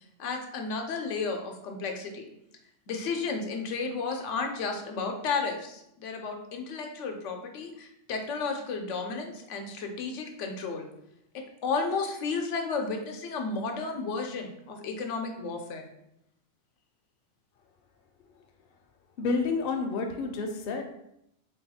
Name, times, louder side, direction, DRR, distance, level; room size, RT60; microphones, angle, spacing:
voice 1, 0.2-2.3 2.9-10.9 11.3-15.9, left 4 dB, 85° left, 4 dB, 0.9 m, -33 dB
voice 2, 19.2-20.8, left 4 dB, 60° left, 4 dB, 0.7 m, -29 dB
3.5 x 2.3 x 4.1 m, 0.79 s
omnidirectional pair, 1.2 m